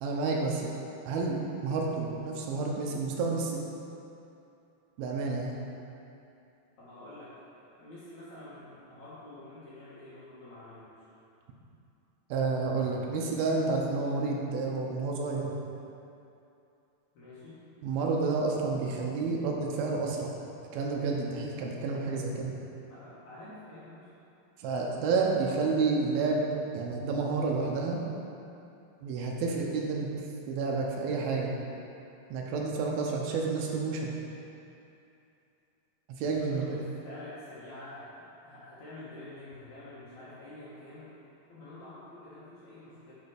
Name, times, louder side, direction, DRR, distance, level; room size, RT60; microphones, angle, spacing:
voice 1, 0.0-0.7 1.1-3.6 5.0-5.6 12.3-15.5 17.8-20.4 20.7-22.6 24.6-26.4 26.7-28.0 29.0-30.1 30.5-31.6 32.3-34.1 36.2-36.8, right 4 dB, 80° right, -1 dB, 2.3 m, -30 dB
voice 2, 6.8-11.1 17.1-17.6 22.9-24.1 36.2-41.1 41.5-43.1, left 1 dB, 60° left, -10 dB, 2.0 m, -47 dB
11.0 x 4.4 x 5.0 m, 2.7 s
omnidirectional pair, 5.0 m